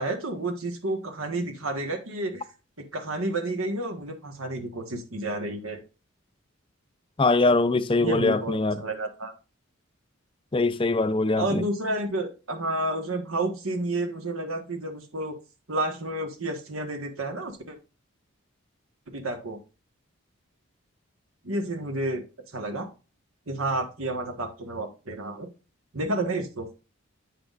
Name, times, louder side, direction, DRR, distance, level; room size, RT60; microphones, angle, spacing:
voice 1, 0.0-2.5 2.9-5.8 8.0-9.3 11.3-15.3 15.7-17.8 19.1-19.6 21.4-22.2 22.5-22.9 23.5-25.5 25.9-26.7, right 2 dB, 85° right, 1.5 m, -30 dB
voice 2, 7.2-8.8 10.5-11.6, left 3 dB, 25° left, 0.4 m, -22 dB
8.8 x 6.1 x 2.5 m
head